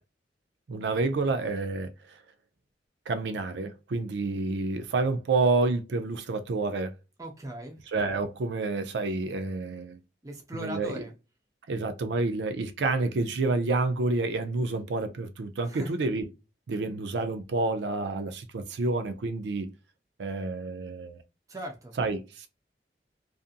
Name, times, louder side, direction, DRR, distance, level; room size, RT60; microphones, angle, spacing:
voice 1, 0.7-1.9 3.1-6.9 7.9-10.0 10.5-11.0 11.7-16.2 16.7-19.7 20.2-21.2 22.0-22.5, right 3 dB, 85° right, 0.4 m, -29 dB
voice 2, 7.2-7.8 10.2-11.1 15.7-15.9 21.5-22.0, equal, 20° right, 0.5 m, -39 dB
2.6 x 2.5 x 2.4 m
head